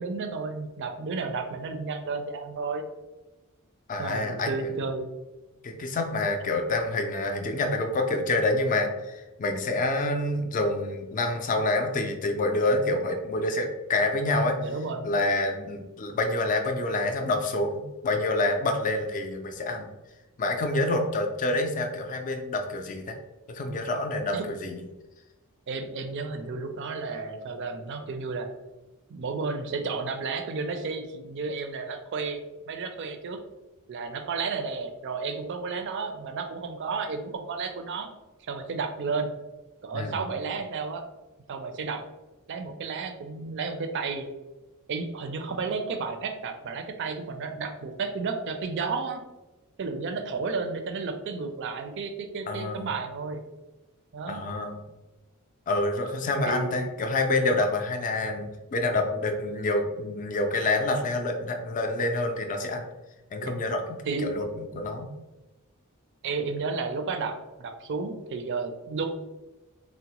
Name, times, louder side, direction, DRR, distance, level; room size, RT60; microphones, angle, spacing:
voice 1, 0.0-2.8 4.0-5.1 14.6-15.1 24.3-24.4 25.7-28.5 29.1-33.4 33.9-38.1 38.4-39.3 39.8-41.1 41.5-42.0 42.5-44.3 44.9-49.2 49.8-53.4 54.1-54.4 56.4-57.0 63.4-63.5 64.0-64.3 66.2-69.1, right 4 dB, 55° right, 7 dB, 0.4 m, -32 dB
voice 2, 3.9-4.8 5.6-14.6 15.0-19.9 20.4-23.2 23.5-24.8 39.9-40.3 52.5-52.9 54.3-54.8 55.7-62.9 63.3-65.1, left 2 dB, 35° left, 5 dB, 0.4 m, -27 dB
3.7 x 2.0 x 2.9 m, 1.1 s
head